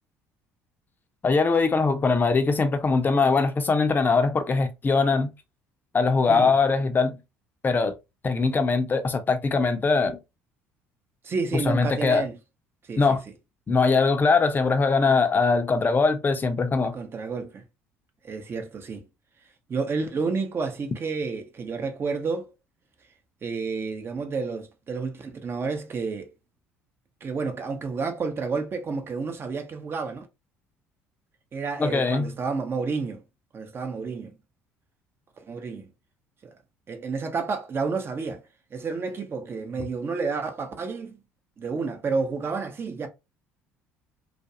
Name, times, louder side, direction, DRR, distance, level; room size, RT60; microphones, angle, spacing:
voice 1, 1.2-5.3 5.9-7.2 7.6-7.9 8.2-10.2 11.5-12.3 13.0-13.2 13.7-16.9 31.8-32.3, left 4 dB, 30° left, 0.6 m, -22 dB
voice 2, 11.2-12.4 12.9-13.2 16.9-17.6 18.2-19.0 19.7-22.5 23.4-26.3 27.2-30.3 31.5-33.2 33.5-34.3 35.5-35.9 36.4-36.5 36.9-38.4 38.7-41.2 41.6-43.1, right 4 dB, 35° right, 0.7 m, -30 dB
2.4 x 2.2 x 2.7 m
hypercardioid pair, 60°, 6 cm